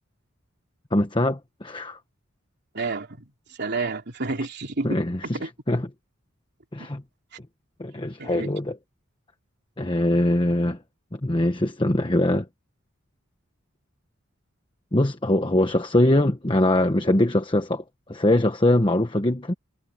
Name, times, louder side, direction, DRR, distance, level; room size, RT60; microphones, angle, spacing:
voice 1, 0.9-2.0 4.8-5.4 5.7-5.9 6.7-7.0 7.8-8.8 9.8-10.8 11.1-12.5 14.9-17.8 18.1-19.5, left 1 dB, 25° left, 1.1 m, -22 dB
voice 2, 2.7-5.0 5.3-5.5 8.2-8.5, right 3 dB, 55° right, 3.2 m, -30 dB
head